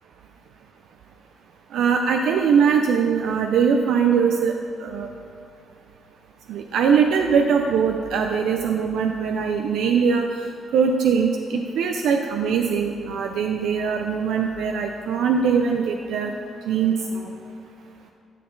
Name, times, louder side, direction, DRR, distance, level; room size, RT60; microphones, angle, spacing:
voice 1, 1.7-4.5 4.8-5.1 6.5-10.5 10.7-16.3 16.7-17.3, right 6 dB, 80° right, 3 dB, 0.4 m, -21 dB
9.9 x 5.7 x 3.9 m, 2.5 s
cardioid pair, 90°, 0 cm